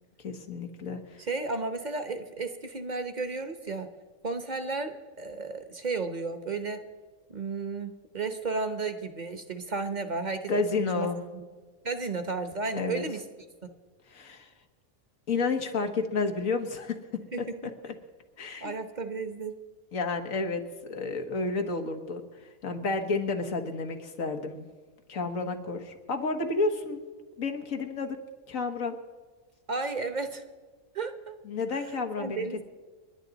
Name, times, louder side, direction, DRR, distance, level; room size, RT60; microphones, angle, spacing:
voice 1, 0.2-1.3 10.5-11.2 12.7-13.0 14.1-14.5 15.3-17.0 17.4-17.5 17.8-17.9 18.4-18.7 19.9-22.2 22.6-24.7 25.1-27.0 27.4-28.2 28.5-29.0 31.5-32.6, left 4 dB, 85° left, 5 dB, 1.8 m, -31 dB
voice 2, 1.2-3.9 4.2-6.8 7.3-11.4 11.8-13.2 17.3-17.4 18.6-19.6 29.7-30.4 30.9-31.3 31.7-32.6, right 4 dB, 35° right, 8 dB, 1.1 m, -33 dB
29.5 x 11.0 x 4.0 m, 1.4 s
omnidirectional pair, 1.4 m